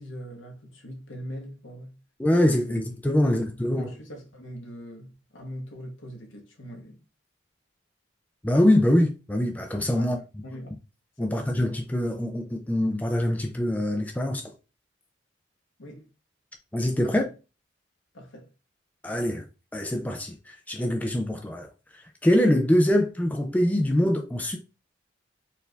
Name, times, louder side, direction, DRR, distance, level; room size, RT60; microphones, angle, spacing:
voice 1, 0.0-2.0 2.7-2.8 3.2-7.0 10.0-10.8 11.2-11.6 15.8-16.1 17.0-17.3 18.1-18.5, equal, 80° left, 1.2 m, -42 dB
voice 2, 2.2-3.9 8.4-10.2 11.2-14.5 16.7-17.2 19.0-19.4 19.7-21.7 21.9-24.6, left 1 dB, 10° left, 0.4 m, -24 dB
4.4 x 2.6 x 3.3 m
head